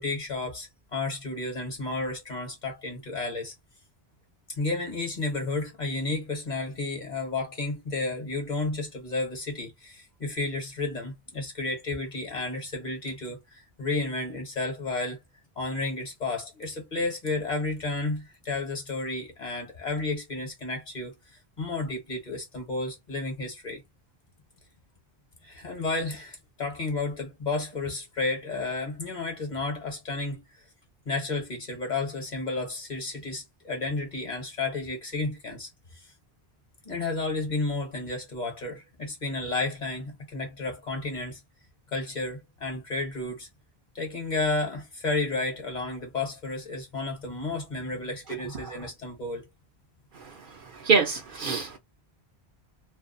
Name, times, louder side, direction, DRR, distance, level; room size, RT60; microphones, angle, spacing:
voice 1, 0.0-3.5 4.5-15.2 15.6-21.1 21.6-23.8 25.4-30.4 31.0-35.7 35.9-36.1 36.8-41.4 41.9-43.5 43.9-49.5, left 3 dB, 45° left, 1.1 m, -32 dB
voice 2, 50.8-51.8, right 5 dB, 60° right, 0.7 m, -24 dB
2.5 x 2.2 x 2.5 m
omnidirectional pair, 1.1 m